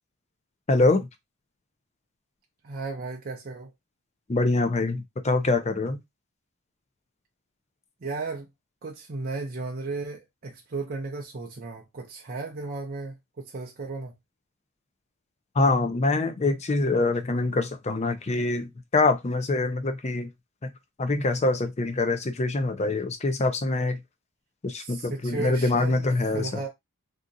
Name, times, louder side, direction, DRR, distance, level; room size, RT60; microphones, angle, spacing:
voice 1, 0.7-1.1 4.3-6.0 15.5-20.3 21.0-24.0 24.6-26.6, left 2 dB, 30° left, 0.5 m, -24 dB
voice 2, 2.6-3.7 8.0-8.5 8.8-14.1 24.8-26.1 26.3-26.7, right 3 dB, 40° right, 0.6 m, -35 dB
2.8 x 2.5 x 3.7 m
head